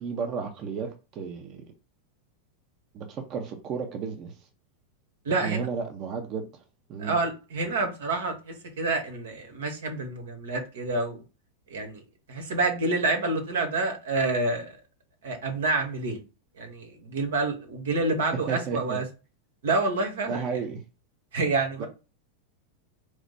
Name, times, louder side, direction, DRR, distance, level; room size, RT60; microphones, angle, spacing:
voice 1, 0.0-1.6 2.9-4.4 5.3-6.6 6.9-7.2 18.5-19.0 20.3-20.8 21.8-21.9, right 5 dB, 40° right, 0.7 m, -33 dB
voice 2, 5.2-5.7 7.0-11.2 11.7-12.0 12.3-14.8 15.2-16.2 16.6-19.0 19.6-20.4 21.3-21.8, right 3 dB, 85° right, 1.4 m, -28 dB
4.7 x 2.1 x 4.0 m
supercardioid pair, 130°, 0 cm